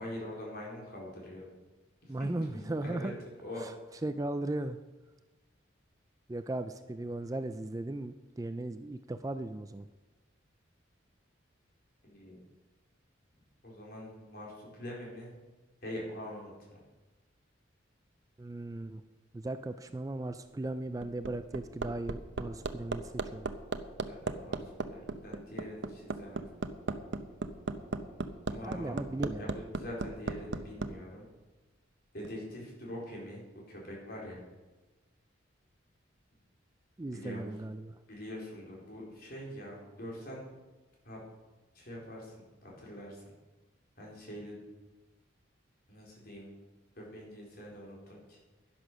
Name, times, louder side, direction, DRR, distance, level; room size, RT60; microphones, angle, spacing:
voice 1, 0.0-1.5 2.0-3.1 3.4-3.7 12.0-12.4 13.6-15.3 15.8-16.8 24.0-26.4 28.5-29.1 29.4-31.3 32.1-34.4 37.1-37.5 38.1-40.5 41.0-41.2 41.7-43.2 44.0-44.6 45.9-46.5 47.0-48.4, equal, 50° left, -3 dB, 4.4 m, -44 dB
voice 2, 2.1-3.1 3.6-3.7 4.0-4.8 6.3-9.9 18.4-19.0 19.3-23.5 28.6-29.5 37.0-38.0, right 2 dB, 15° right, 10 dB, 0.3 m, -37 dB
Hammer, 20.8-30.9 32.2-32.3, right 3 dB, 65° right, 0.7 m, -35 dB
11.0 x 10.5 x 6.3 m, 1.2 s
head